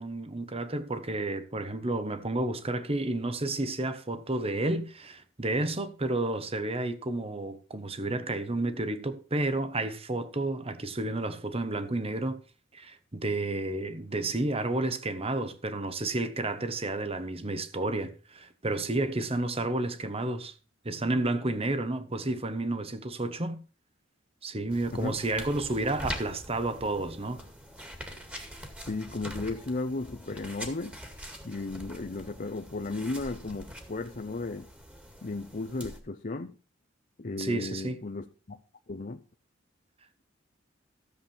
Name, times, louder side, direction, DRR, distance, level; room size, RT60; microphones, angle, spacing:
voice 1, 0.0-12.4 12.7-20.5 20.8-23.6 24.4-27.4 37.4-38.0, right 2 dB, 30° right, 1.1 m, -31 dB
sound 1, 24.7-36.0, equal, 5° right, 2.1 m, -43 dB
voice 2, 28.9-31.0 31.4-34.7 35.2-36.6 37.2-38.6 38.9-39.2, left 3 dB, 45° left, 0.7 m, -35 dB
14.0 x 7.4 x 4.3 m
head